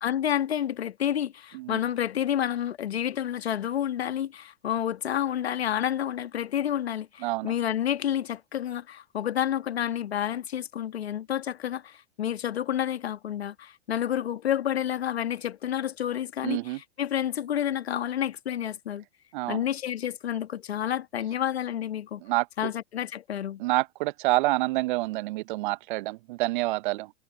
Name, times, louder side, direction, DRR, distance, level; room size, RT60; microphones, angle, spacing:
voice 1, 0.0-19.0 19.5-22.2 22.6-23.6, left 10 dB, 70° left, 1.7 m, -29 dB
voice 2, 7.2-7.5 16.4-16.8 19.3-19.6 22.2-22.4 23.6-27.1, right 20 dB, 50° right, 1.1 m, -27 dB
figure-of-eight pair, 100°, 32 cm